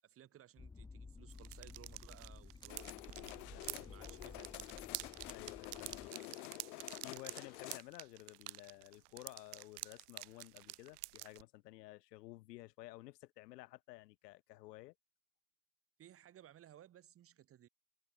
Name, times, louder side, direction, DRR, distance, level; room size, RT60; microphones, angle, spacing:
voice 1, 0.0-3.0 3.2-4.8 16.0-17.7, right 11 dB, 30° right, 6.3 m, -60 dB
sound 1, 0.6-6.1, left 4 dB, 10° left, 2.1 m, -54 dB
sound 2, 1.3-11.4, right 22 dB, 70° right, 1.8 m, -49 dB
sound 3, 2.7-7.8, left 25 dB, 65° left, 1.7 m, -50 dB
voice 2, 3.5-3.9 5.3-6.4 7.0-14.9, left 18 dB, 85° left, 2.4 m, -54 dB
supercardioid pair, 160°, 47 cm